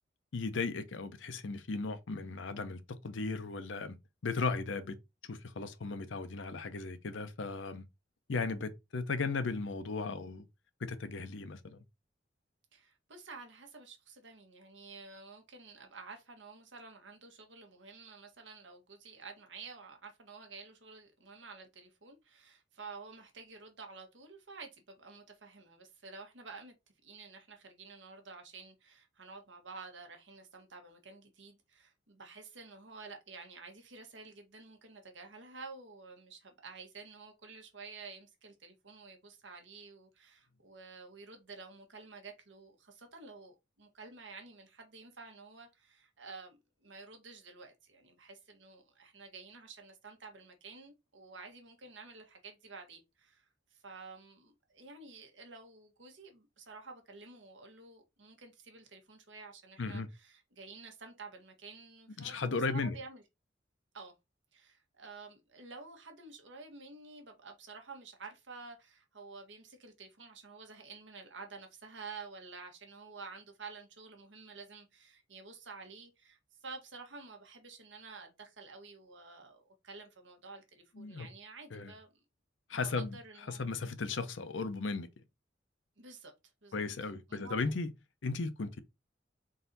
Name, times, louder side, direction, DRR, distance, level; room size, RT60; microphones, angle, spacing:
voice 1, 0.3-2.8 3.0-4.0 4.2-5.0 5.3-7.8 8.3-10.5 10.8-11.8 59.8-60.1 62.2-63.0 81.0-81.3 81.7-81.9 82.7-83.2 83.5-85.1 86.7-87.9 88.2-88.8, left 4 dB, 85° left, 0.6 m, -36 dB
voice 2, 12.7-26.7 27.0-63.2 63.9-64.1 64.5-82.1 82.7-83.7 86.0-86.3 86.6-86.8 87.3-87.7, right 4 dB, 75° right, 1.3 m, -51 dB
4.0 x 2.7 x 3.9 m
head